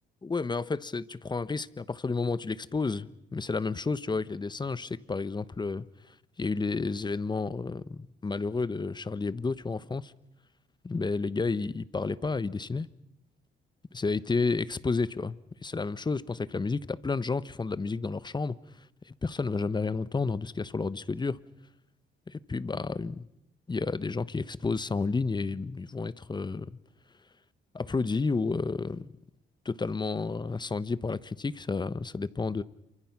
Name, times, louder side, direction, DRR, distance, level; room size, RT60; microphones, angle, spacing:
voice 1, 0.2-10.1 10.8-12.9 13.9-18.6 19.1-21.4 22.3-23.3 23.7-26.8 27.7-29.1 29.6-32.6, left 4 dB, 20° left, 1.0 m, -31 dB
28.5 x 24.5 x 6.0 m
cardioid pair, 90°, 20 cm